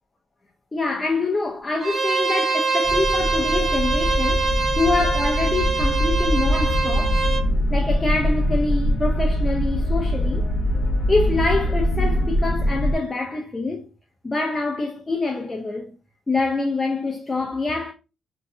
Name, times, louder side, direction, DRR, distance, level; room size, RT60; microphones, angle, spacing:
voice 1, 0.7-7.2 7.7-10.5 11.1-13.8 14.2-15.9 16.3-17.9, left 3 dB, 20° left, 0.3 m, -25 dB
Bowed string instrument, 1.8-7.4, right 4 dB, 35° right, 0.6 m, -24 dB
sound 1, 2.8-13.0, equal, 60° left, 0.8 m, -22 dB
2.6 x 2.0 x 2.6 m
cardioid pair, 90°, 0 cm